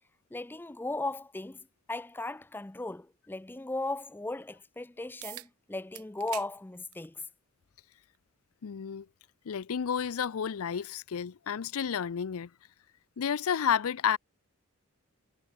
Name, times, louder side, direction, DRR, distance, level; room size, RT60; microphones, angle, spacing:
voice 1, 0.3-7.3, left 2 dB, 10° left, 0.3 m, -37 dB
sound 1, 5.2-5.5 5.9-6.5 6.9-7.1 8.1-8.2 13.2-13.3, right 15 dB, 85° right, 0.9 m, -43 dB
voice 2, 8.6-9.1 9.5-12.5 13.2-14.2, left 7 dB, 80° left, 0.5 m, -31 dB
head